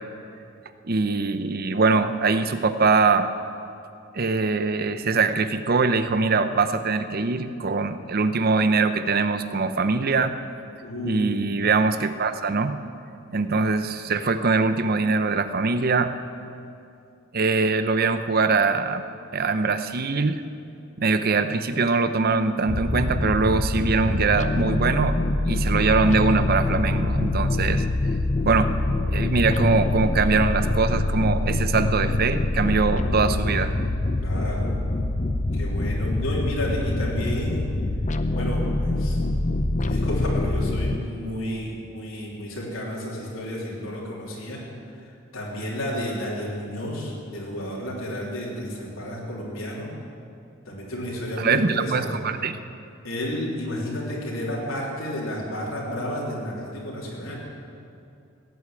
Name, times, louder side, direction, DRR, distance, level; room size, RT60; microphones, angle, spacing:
voice 1, 0.8-3.3 4.1-10.3 11.0-12.8 13.3-16.1 17.3-19.0 19.3-20.4 21.0-25.2 25.5-27.9 28.4-28.7 29.1-33.7 51.4-52.6, right 4 dB, 45° right, 11 dB, 0.7 m, -22 dB
voice 2, 10.8-11.5 34.2-34.7 35.5-37.7 38.3-39.2 39.8-44.7 45.3-49.9 50.6-52.2 53.0-57.4, equal, 85° left, -4 dB, 3.2 m, -31 dB
sound 1, 22.7-41.0, left 2 dB, 35° left, 0.6 m, -25 dB
17.0 x 8.3 x 9.0 m, 2.6 s
head